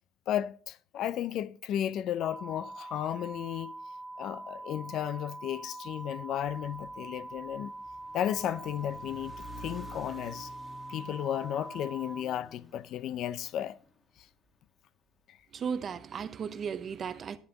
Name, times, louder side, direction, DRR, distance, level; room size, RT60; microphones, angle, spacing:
voice 1, 0.3-3.7 4.2-7.7 8.1-10.5 10.9-13.8, left 11 dB, 50° left, 0.4 m, -34 dB
sound 1, 2.2-12.2, right 2 dB, 5° left, 1.7 m, -44 dB
sound 2, 6.3-14.7, equal, 20° left, 1.7 m, -52 dB
voice 2, 15.5-17.4, right 6 dB, 35° right, 0.6 m, -35 dB
11.0 x 11.0 x 2.9 m
cardioid pair, 150°, 0 cm